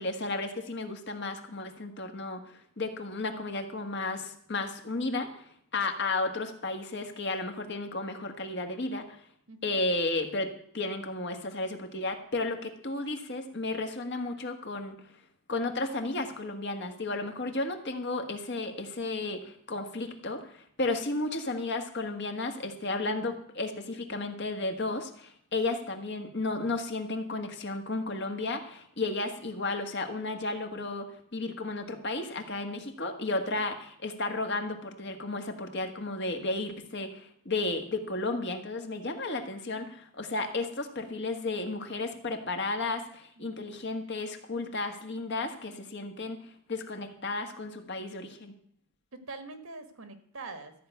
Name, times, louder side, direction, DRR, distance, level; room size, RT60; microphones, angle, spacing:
voice 1, 0.0-5.4 5.7-9.2 9.6-15.0 15.5-48.5, left 2 dB, 50° left, 5 dB, 1.6 m, -33 dB
voice 2, 9.5-9.8 43.4-43.6 49.1-50.7, right 3 dB, 70° right, 8 dB, 1.6 m, -44 dB
14.0 x 5.7 x 9.2 m, 0.63 s
head